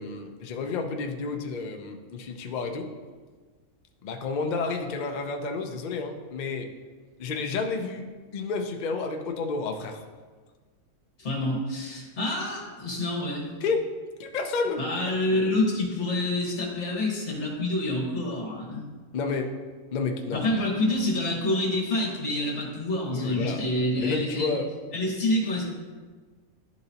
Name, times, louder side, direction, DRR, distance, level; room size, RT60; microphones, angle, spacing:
voice 1, 0.0-2.9 4.0-6.7 7.2-8.0 8.3-10.0 13.6-13.9 14.2-14.8 19.1-19.6 19.9-20.7 23.1-23.6 24.0-24.7, left 4 dB, 75° left, 4 dB, 0.4 m, -30 dB
voice 2, 11.2-13.5 14.8-18.8 20.3-24.5 24.9-25.7, left 1 dB, 55° left, -3 dB, 1.8 m, -27 dB
11.0 x 3.9 x 2.8 m, 1.4 s
omnidirectional pair, 1.5 m